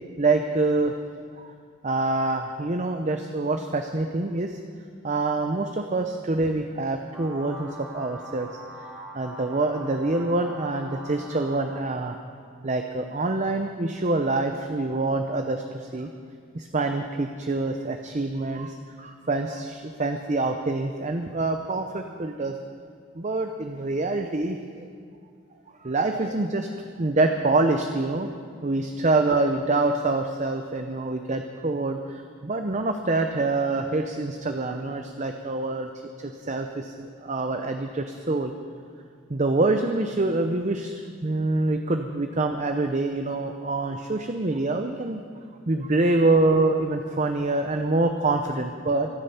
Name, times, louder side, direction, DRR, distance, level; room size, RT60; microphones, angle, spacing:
voice 1, 0.2-1.5 1.8-4.6 5.0-8.5 9.1-12.2 12.6-16.1 16.5-22.6 23.1-24.9 25.8-26.7 27.0-28.3 28.6-35.9 36.2-38.5 39.3-45.2 45.7-49.1, right 2 dB, 35° right, 6 dB, 0.6 m, -26 dB
sound 1, 7.1-12.2, right 2 dB, 5° right, 3.1 m, -43 dB
24.0 x 8.8 x 5.8 m, 2.3 s
head